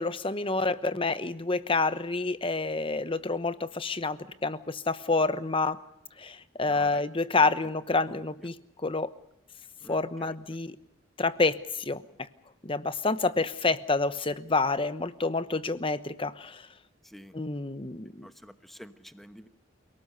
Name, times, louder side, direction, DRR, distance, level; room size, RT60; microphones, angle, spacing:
voice 1, 0.0-5.8 6.2-8.5 8.8-9.1 9.9-10.7 11.2-12.0 12.6-16.6 17.3-18.3, left 3 dB, 25° left, 13 dB, 1.0 m, -28 dB
voice 2, 6.7-7.0 9.8-10.3 17.1-17.3 18.2-19.5, equal, ahead, 9 dB, 1.1 m, -48 dB
28.5 x 18.5 x 6.8 m, 0.80 s
head